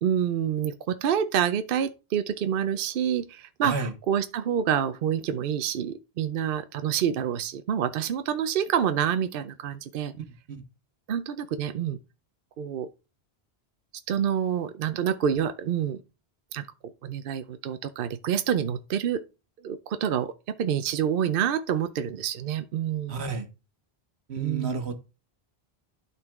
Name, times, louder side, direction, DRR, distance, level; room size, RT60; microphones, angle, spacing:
voice 1, 0.0-10.1 11.1-12.0 12.6-12.9 14.1-16.0 16.5-16.7 17.0-19.2 19.6-20.3 20.6-23.2 24.4-24.8, right 9 dB, 65° right, 0.7 m, -27 dB
voice 2, 23.1-23.4 24.3-24.9, right 4 dB, 80° right, 1.5 m, -31 dB
11.5 x 4.2 x 3.6 m
omnidirectional pair, 1.1 m